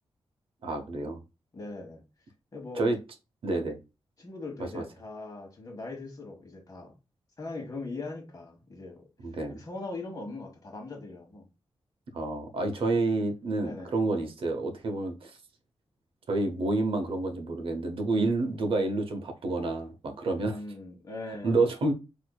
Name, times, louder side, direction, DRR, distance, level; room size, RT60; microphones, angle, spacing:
voice 1, 0.6-1.2 2.8-3.0 3.4-3.8 4.7-4.8 9.2-9.6 12.1-15.4 16.3-20.6 21.4-21.9, right 2 dB, 65° right, 0.7 m, -29 dB
voice 2, 1.5-2.0 2.5-2.9 4.2-6.9 7.4-9.0 9.5-11.5 13.6-14.0 20.4-21.6, left 2 dB, 40° left, 1.1 m, -40 dB
4.4 x 2.6 x 2.2 m
wide cardioid pair, 150°, 10 cm